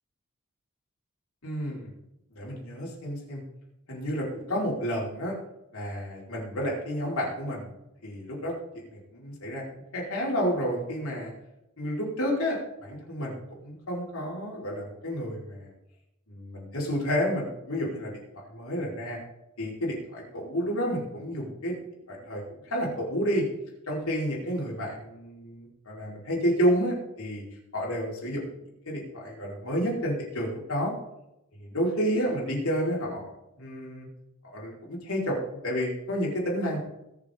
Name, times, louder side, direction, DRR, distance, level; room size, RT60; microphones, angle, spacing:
voice 1, 1.4-1.9 2.4-3.4 3.9-5.3 5.7-7.7 8.0-9.6 9.9-11.3 11.8-13.3 13.6-15.7 16.3-18.1 18.5-19.2 19.6-21.8 22.1-23.5 23.9-27.4 27.7-28.5 28.8-30.9 31.6-33.3 33.6-34.1 34.4-35.4 35.6-36.8, equal, 80° left, -3 dB, 4.9 m, -30 dB
21.5 x 7.2 x 3.8 m, 0.86 s
head